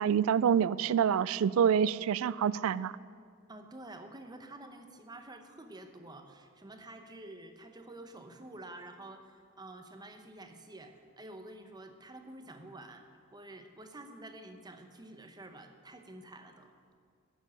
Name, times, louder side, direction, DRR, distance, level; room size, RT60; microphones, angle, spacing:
voice 1, 0.0-2.9, right 8 dB, 80° right, 19 dB, 0.3 m, -27 dB
voice 2, 3.5-13.0 13.3-16.7, right 2 dB, 20° right, 6 dB, 0.9 m, -49 dB
11.5 x 7.2 x 8.3 m, 2.1 s
head